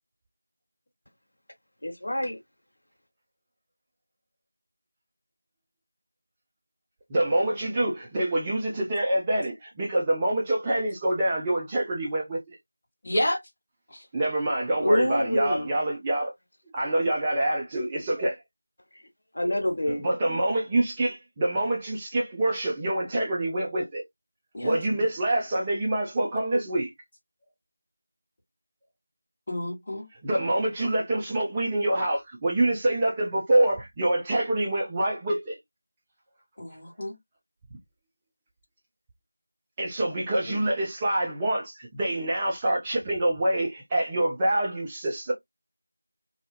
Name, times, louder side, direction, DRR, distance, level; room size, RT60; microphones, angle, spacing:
voice 1, 1.8-2.4 14.8-15.7 19.3-20.0, left 1 dB, 55° left, 1.2 m, -26 dB
voice 2, 7.1-12.6 14.1-16.3 16.7-18.3 19.9-24.0 24.6-26.9 30.2-35.6 39.8-45.3, right 1 dB, 15° right, 0.5 m, -26 dB
voice 3, 13.0-13.4 24.5-24.8 29.5-30.1 36.6-37.2, left 1 dB, 25° left, 1.1 m, -29 dB
2.7 x 2.3 x 2.3 m
figure-of-eight pair, 170°, 0 cm